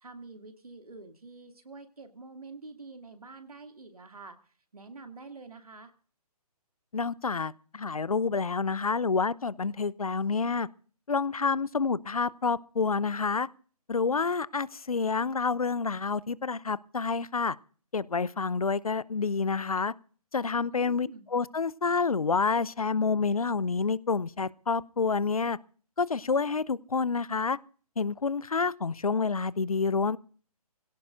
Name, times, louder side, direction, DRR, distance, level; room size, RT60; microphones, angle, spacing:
voice 1, 0.0-4.4 4.7-5.9 20.7-21.3, right 3 dB, 65° right, 2.5 m, -47 dB
voice 2, 6.9-10.7 11.1-13.5 13.9-17.6 17.9-19.9 20.3-25.6 26.0-27.6 28.0-30.2, left 4 dB, 65° left, 0.7 m, -28 dB
25.0 x 17.0 x 2.5 m
figure-of-eight pair, 140°, 20 cm